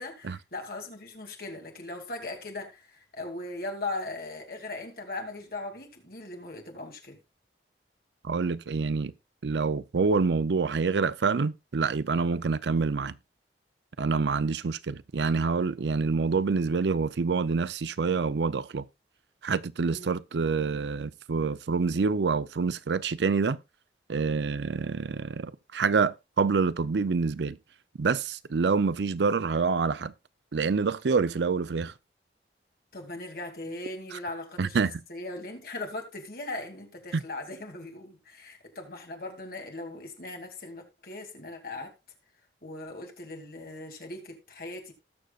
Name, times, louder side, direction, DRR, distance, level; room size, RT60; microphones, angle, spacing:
voice 1, 0.0-7.2 19.9-20.2 32.9-41.9 42.6-44.9, left 2 dB, 55° left, 2.5 m, -39 dB
voice 2, 8.2-9.1 9.4-13.1 14.0-18.8 19.4-23.6 24.1-27.6 28.0-30.1 30.5-31.9 34.6-35.0 37.1-37.2, right 4 dB, 80° right, 0.5 m, -27 dB
19.0 x 6.4 x 2.4 m
head